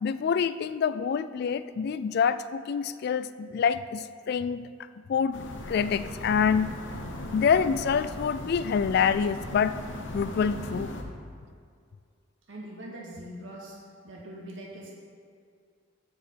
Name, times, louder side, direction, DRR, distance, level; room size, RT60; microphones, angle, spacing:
voice 1, 0.0-4.7 5.1-5.4 5.7-6.7 7.3-9.8 10.1-11.0, left 6 dB, 55° left, 14 dB, 0.3 m, -26 dB
sound 1, 5.3-11.0, left 1 dB, 75° left, 0.9 m, -38 dB
voice 2, 12.5-13.8 14.0-14.9, right 1 dB, 85° right, -3 dB, 2.2 m, -42 dB
14.5 x 4.9 x 4.5 m, 2.2 s
head